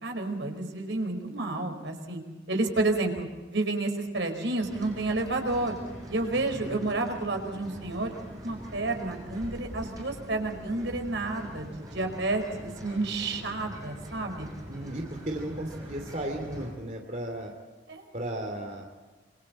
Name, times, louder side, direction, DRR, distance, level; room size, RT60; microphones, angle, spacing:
voice 1, 0.0-2.2 2.5-5.7 6.1-8.1 8.4-14.5 17.9-18.0, right 2 dB, 90° right, 5 dB, 4.8 m, -30 dB
sound 1, 4.6-16.7, equal, 20° right, 6.6 m, -43 dB
voice 2, 6.3-6.7 14.7-17.5 18.1-18.8, right 1 dB, 40° right, 2 dB, 2.7 m, -35 dB
27.0 x 25.5 x 4.3 m, 1.3 s
head